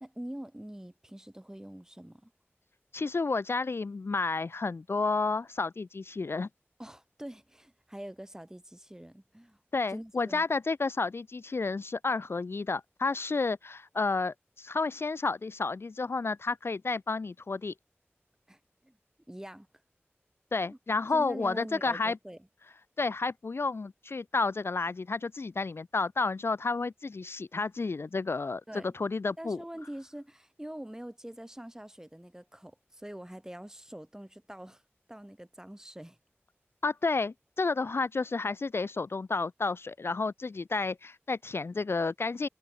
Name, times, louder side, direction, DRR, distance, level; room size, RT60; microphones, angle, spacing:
voice 1, 0.0-2.3 6.8-9.6 9.9-10.4 18.5-19.0 19.3-19.7 20.7-20.8 21.1-22.4 28.7-28.9 29.4-34.8 35.1-36.2, right 1 dB, 10° right, 1.5 m, -44 dB
voice 2, 2.9-6.5 9.7-17.7 20.5-22.2 23.0-28.6 28.9-29.6 36.8-42.5, left 3 dB, 65° left, 0.4 m, -31 dB
wide cardioid pair, 60°, 4 cm